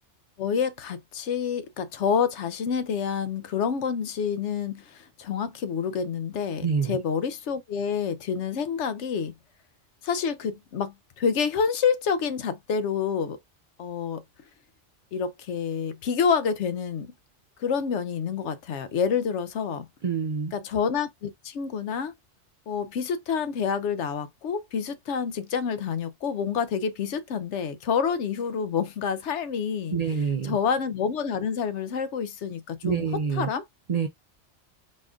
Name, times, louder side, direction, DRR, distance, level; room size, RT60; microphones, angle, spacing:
voice 1, 0.4-9.3 10.0-13.4 13.8-14.2 15.1-17.1 17.6-19.9 20.5-22.1 22.7-30.0 30.4-33.0 33.4-33.6, left 6 dB, 75° left, 1.0 m, -28 dB
voice 2, 6.6-7.0 20.0-20.5 29.9-30.6 32.8-33.5 33.9-34.1, right 6 dB, 50° right, 0.5 m, -26 dB
4.2 x 2.4 x 3.6 m
omnidirectional pair, 1.2 m